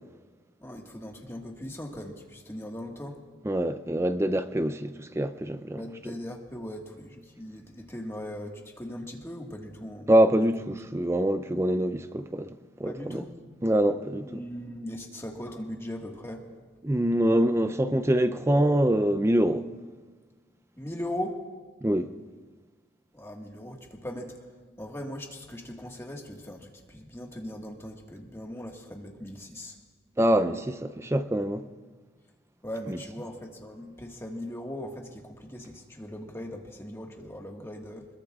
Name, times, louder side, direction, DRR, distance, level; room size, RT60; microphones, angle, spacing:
voice 1, 0.6-3.2 5.7-10.1 12.8-13.3 14.2-16.7 20.8-21.4 23.1-24.4 24.8-29.8 32.6-38.1, left 1 dB, 15° left, 1.6 m, -39 dB
voice 2, 3.4-5.8 10.1-13.2 13.6-14.4 16.8-19.7 21.8-22.1 30.2-31.7 32.9-33.0, right 1 dB, 15° right, 0.5 m, -25 dB
24.5 x 21.5 x 2.4 m
head